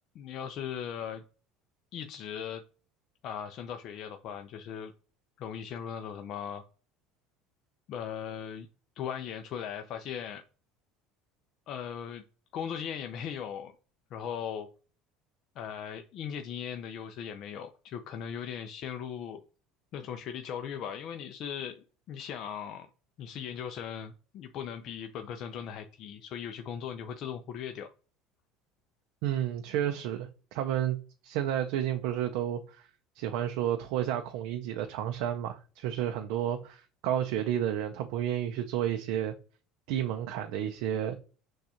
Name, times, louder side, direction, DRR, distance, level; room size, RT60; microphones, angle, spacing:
voice 1, 0.1-1.2 1.9-2.6 3.2-4.9 5.4-6.6 7.9-8.7 9.0-10.4 11.7-12.2 12.5-13.7 14.1-14.7 15.6-19.4 19.9-22.9 23.2-27.9, left 8 dB, 50° left, 0.4 m, -38 dB
voice 2, 29.2-31.0 31.2-32.9 33.2-39.3 39.9-41.2, right 11 dB, 75° right, 0.5 m, -31 dB
6.3 x 2.3 x 2.8 m
cardioid pair, 145°, 0 cm